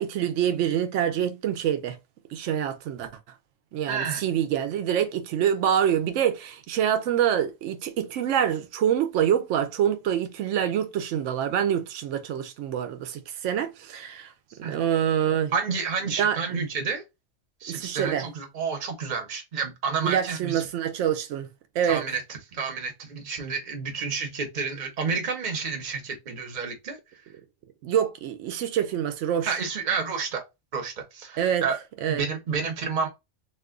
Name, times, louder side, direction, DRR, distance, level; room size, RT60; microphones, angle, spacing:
voice 1, 0.0-2.0 2.3-3.1 3.7-14.3 14.6-15.5 16.2-16.6 17.7-18.3 20.0-21.5 21.8-22.0 27.8-29.5 31.4-31.7 32.0-32.2, right 9 dB, 75° right, 0.9 m, -26 dB
voice 2, 3.9-4.2 14.6-14.8 15.5-17.0 17.6-20.7 21.8-27.0 29.4-30.4 30.7-31.8 32.1-33.1, right 5 dB, 40° right, 0.9 m, -30 dB
2.5 x 2.4 x 3.6 m
omnidirectional pair, 1.3 m